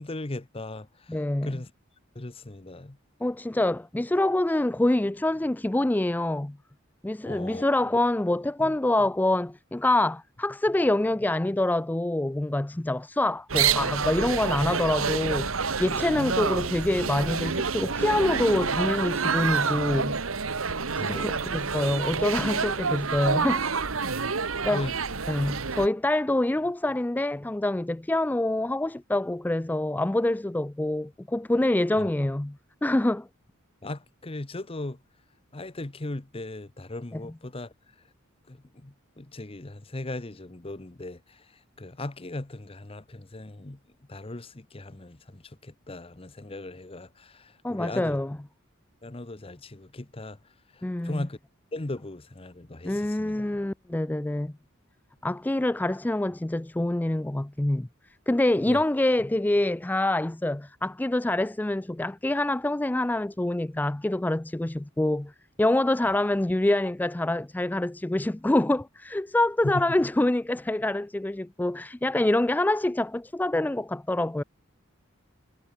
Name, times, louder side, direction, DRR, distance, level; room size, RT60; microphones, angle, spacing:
voice 1, 0.0-1.2 1.4-1.7 2.1-3.0 7.2-7.6 16.2-16.3 20.8-21.5 24.6-25.0 32.0-32.1 33.8-35.0 35.5-37.7 38.5-41.4 41.8-43.8 44.1-48.2 49.0-50.4 50.7-51.4 51.7-53.3 58.7-58.8 69.6-69.8, left 2 dB, 25° left, 0.9 m, -38 dB
voice 2, 1.1-1.5 3.2-6.6 7.0-15.5 15.8-20.2 21.0-23.6 24.6-24.8 25.3-33.3 37.1-37.2 47.6-48.4 50.8-51.3 52.8-54.5 55.2-57.9 58.3-65.3 65.6-74.4, left 1 dB, 10° left, 0.3 m, -26 dB
sound 1, 13.5-25.9, right 5 dB, 85° right, 1.6 m, -28 dB
head